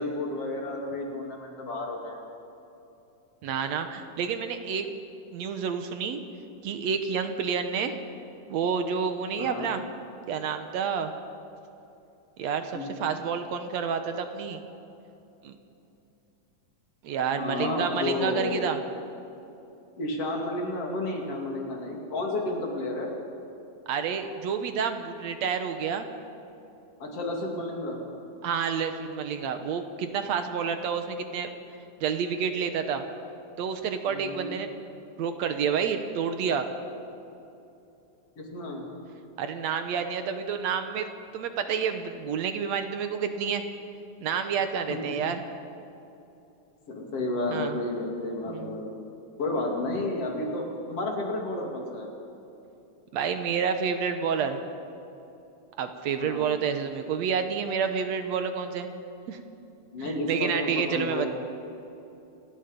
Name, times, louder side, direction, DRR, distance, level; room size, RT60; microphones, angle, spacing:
voice 1, 0.0-2.2 9.4-9.7 12.7-12.9 17.4-18.6 20.0-23.1 27.0-28.0 34.1-34.6 38.4-38.9 44.9-45.3 46.9-48.9 49.4-52.1 56.2-56.5 59.9-61.3, left 2 dB, 50° left, 0 dB, 3.7 m, -31 dB
voice 2, 3.4-5.0 5.3-6.2 6.6-8.0 8.5-9.9 10.3-11.1 12.4-14.6 15.4-15.6 17.0-18.8 23.9-26.1 28.4-31.5 32.0-33.0 33.6-34.7 35.2-36.7 39.4-43.6 44.2-45.4 47.5-47.8 48.5-48.8 49.9-50.1 53.1-54.6 55.8-58.9 59.3-59.4 60.0-61.3, right 6 dB, 70° right, 8 dB, 2.1 m, -29 dB
28.5 x 18.5 x 5.3 m, 2.8 s
omnidirectional pair, 3.5 m